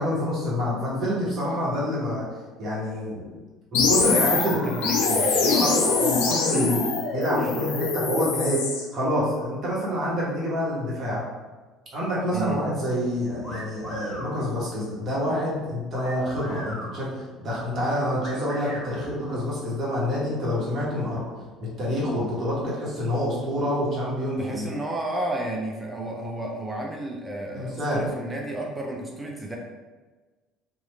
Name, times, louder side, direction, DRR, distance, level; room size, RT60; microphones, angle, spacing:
voice 1, 0.0-2.2 2.6-3.4 3.7-5.0 5.5-6.8 7.1-8.6 8.9-11.2 11.9-21.2 21.8-24.7 27.5-28.1, equal, 40° right, -6 dB, 1.2 m, -27 dB
sound 1, 3.7-8.8, left 4 dB, 65° left, 0.4 m, -23 dB
voice 2, 4.1-5.7 6.5-6.7 7.4-7.6 12.3-12.6 24.4-29.6, right 1 dB, 15° right, -1 dB, 0.5 m, -32 dB
sound 2, 13.4-14.3 15.9-16.9 18.2-18.9, equal, 30° left, 1.2 m, -38 dB
3.0 x 2.4 x 3.1 m, 1.3 s
figure-of-eight pair, 55°, 0 cm